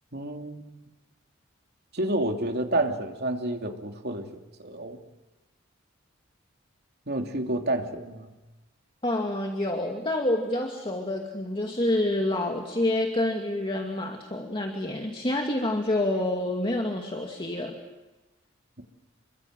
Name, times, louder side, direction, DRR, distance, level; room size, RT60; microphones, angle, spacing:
voice 1, 0.1-0.7 1.9-4.3 4.6-5.0 7.1-8.3, right 1 dB, 55° right, 3 dB, 3.0 m, -29 dB
voice 2, 9.0-17.8, left 1 dB, 25° left, 2 dB, 2.4 m, -28 dB
28.0 x 24.0 x 7.6 m, 1.1 s
head